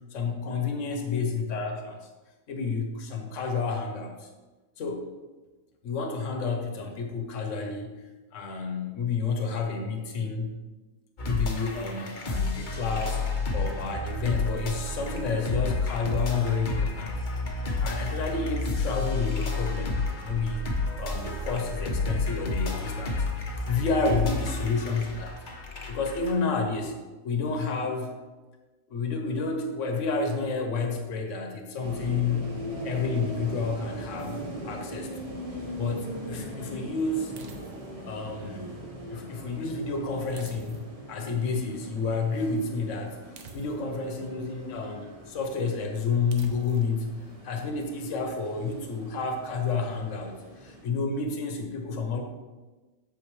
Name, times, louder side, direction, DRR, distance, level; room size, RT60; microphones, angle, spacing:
voice 1, 0.1-2.0 2.5-4.3 4.8-5.1 5.8-7.9 8.3-10.6 11.2-13.2 13.5-17.1 17.8-20.7 21.0-23.2 23.7-25.3 25.8-27.0 27.2-28.2 28.9-32.6 32.8-35.3 35.8-37.3 38.1-38.8 39.1-40.8 41.1-43.2 43.5-47.1 47.4-52.2, left 4 dB, 60° left, 4 dB, 1.3 m, -30 dB
sound 1, 11.2-26.3, left 3 dB, 40° left, 1.0 m, -30 dB
sound 2, 31.8-50.8, right 1 dB, 25° right, 1.3 m, -41 dB
sound 3, 37.4-38.0 40.4-41.1 43.4-44.1 46.3-47.0, right 4 dB, 90° right, 1.3 m, -48 dB
8.5 x 7.0 x 3.1 m, 1.2 s
omnidirectional pair, 1.5 m